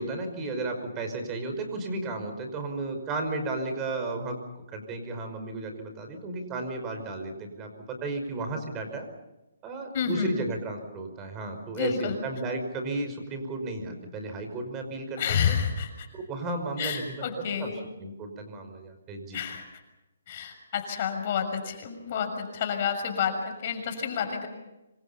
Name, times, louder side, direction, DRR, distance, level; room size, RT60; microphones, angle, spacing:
voice 1, 0.0-4.4 4.7-9.1 9.6-15.6 16.1-17.3 17.6-17.7 18.0-19.4, right 2 dB, 20° right, 5 dB, 5.5 m, -34 dB
voice 2, 9.9-10.3 11.7-12.2 15.2-16.1 16.8-17.8 19.3-19.6 20.3-24.5, left 7 dB, 40° left, 5 dB, 6.6 m, -29 dB
26.5 x 26.0 x 5.7 m, 1.0 s
hypercardioid pair, 155°, 0 cm